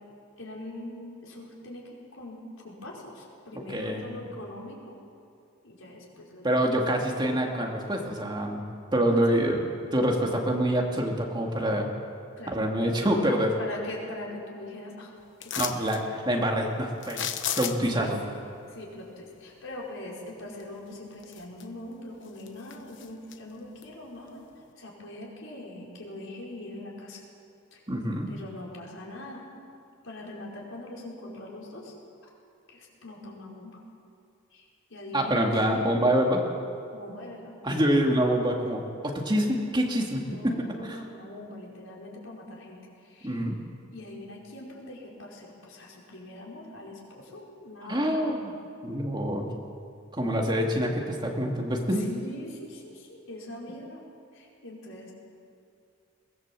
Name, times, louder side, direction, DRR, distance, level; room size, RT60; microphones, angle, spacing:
voice 1, 0.4-5.0 5.6-7.0 9.3-9.5 12.4-13.2 13.6-15.1 15.4-15.9 17.9-18.3 18.7-24.5 24.8-27.2 27.7-27.8 28.3-29.4 30.0-31.9 32.7-33.8 34.5-35.9 36.9-37.5 40.2-43.4 43.9-48.4 51.9-54.0 54.3-55.1, left 1 dB, 80° left, -3 dB, 5.2 m, -42 dB
voice 2, 3.7-4.1 6.4-8.7 8.9-11.9 12.5-13.5 15.6-17.3 17.5-18.2 27.9-28.3 35.1-36.4 37.6-40.2 40.9-41.0 43.2-43.6 47.9-48.5 48.8-49.5 50.1-52.0, equal, 20° right, 0 dB, 2.4 m, -26 dB
sound 1, 15.4-16.0 17.0-18.0 20.6-20.7 21.2-21.9 22.2-23.4 23.8-23.9, left 10 dB, 60° left, 1.1 m, -33 dB
22.5 x 19.5 x 7.6 m, 2.5 s
head